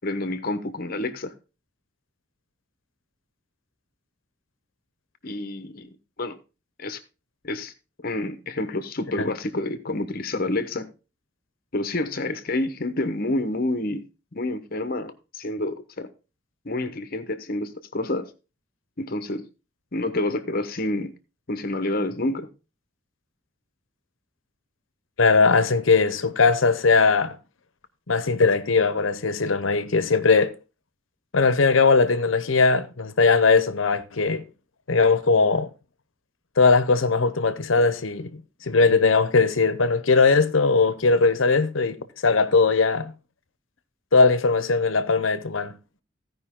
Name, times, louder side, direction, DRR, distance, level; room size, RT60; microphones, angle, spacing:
voice 1, 0.0-1.3 5.2-6.4 6.8-7.0 7.4-7.7 8.0-10.9 11.7-14.1 14.3-16.1 16.6-18.3 19.0-19.5 19.9-21.1 21.5-22.5, left 2 dB, 50° left, 1.1 m, -28 dB
voice 2, 25.2-27.4 28.1-30.5 31.3-34.4 34.9-35.7 36.6-43.1 44.1-45.8, left 4 dB, 90° left, 0.9 m, -20 dB
16.0 x 5.3 x 3.7 m
head